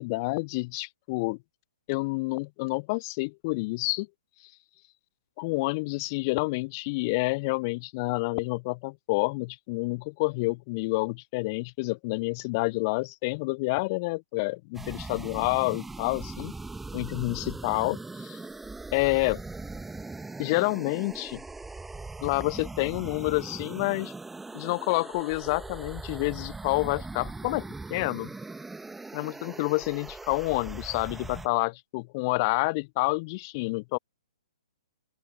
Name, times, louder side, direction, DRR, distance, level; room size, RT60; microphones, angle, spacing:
voice 1, 0.0-1.4 1.9-4.1 5.4-16.5 16.9-18.4 18.9-19.4 20.4-21.4 22.2-24.1 24.5-28.3 29.1-34.0, left 26 dB, 35° left, 0.4 m, -28 dB
sound 1, 14.7-31.5, right 3 dB, 5° right, 1.7 m, -40 dB
open air
figure-of-eight pair, 120°, 3 cm